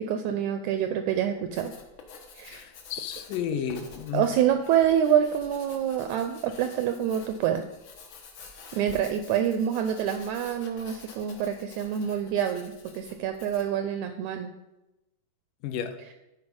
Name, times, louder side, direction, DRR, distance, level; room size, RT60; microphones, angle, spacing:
voice 1, 0.0-1.8 2.3-2.7 4.1-7.7 8.7-14.5, right 9 dB, 85° right, 8 dB, 1.6 m, -26 dB
Writing, 1.4-13.8, left 4 dB, 65° left, 1.2 m, -49 dB
voice 2, 2.5-4.2 15.6-15.9, left 9 dB, 85° left, 7 dB, 2.3 m, -32 dB
10.5 x 4.5 x 5.3 m, 0.97 s
omnidirectional pair, 3.7 m